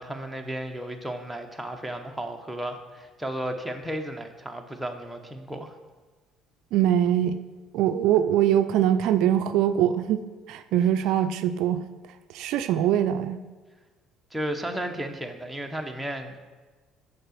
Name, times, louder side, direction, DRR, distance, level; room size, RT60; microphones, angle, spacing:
voice 1, 0.0-5.7 14.3-16.4, right 1 dB, 5° right, 3 dB, 0.9 m, -34 dB
voice 2, 6.7-7.4 7.7-11.8 12.3-13.4, right 10 dB, 75° right, 10 dB, 0.4 m, -23 dB
7.8 x 4.9 x 6.6 m, 1.3 s
supercardioid pair, 90°, 0 cm